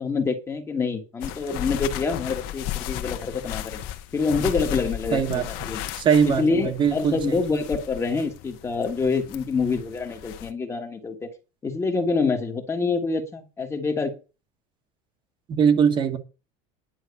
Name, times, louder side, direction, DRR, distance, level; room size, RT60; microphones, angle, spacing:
voice 1, 0.0-3.8 4.1-5.8 6.2-11.3 11.6-14.1, left 4 dB, 15° left, 1.4 m, -26 dB
sound 1, 1.2-10.5, left 12 dB, 60° left, 1.4 m, -35 dB
voice 2, 5.1-5.4 6.0-7.2 15.5-16.2, right 7 dB, 30° right, 1.2 m, -20 dB
10.5 x 5.9 x 8.1 m
cardioid pair, 175°, 17 cm